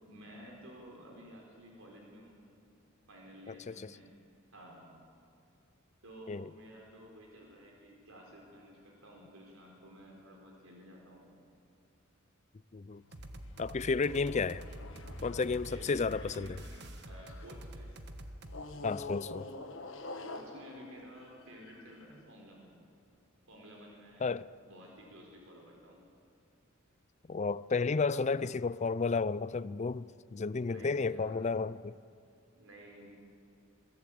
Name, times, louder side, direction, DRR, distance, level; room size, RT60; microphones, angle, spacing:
voice 1, 0.1-2.4 3.1-4.1 4.5-4.9 6.0-11.3 15.7-16.7 17.0-17.9 20.2-22.8 23.5-24.4 24.7-26.0 28.1-28.3 30.6-31.5 32.6-33.2, equal, 80° right, 4.4 m, -53 dB
voice 2, 3.5-3.9 6.3-6.5 12.7-13.0 13.6-14.6 15.2-16.6 18.8-19.5 24.2-24.5 27.3-32.0, left 4 dB, 35° left, 0.4 m, -32 dB
sound 1, 13.0-17.7 18.5-22.1, left 2 dB, 65° left, 1.7 m, -47 dB
sound 2, 13.1-18.6, right 1 dB, 55° right, 1.4 m, -46 dB
22.0 x 17.0 x 8.6 m
head